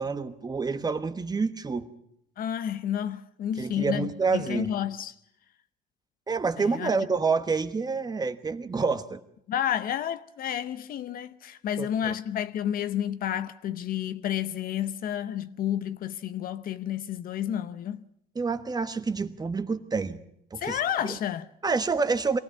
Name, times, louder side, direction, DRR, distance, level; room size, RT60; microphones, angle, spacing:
voice 1, 0.0-1.9 3.6-4.7 6.3-9.2 11.8-12.1 18.3-20.2 20.5-20.8 21.1-21.2 21.6-22.4, right 4 dB, 25° right, 1.2 m, -28 dB
voice 2, 2.4-5.1 6.6-6.9 9.5-18.0 20.6-21.5, left 10 dB, 60° left, 0.8 m, -30 dB
23.0 x 16.5 x 7.3 m
cardioid pair, 110°, 17 cm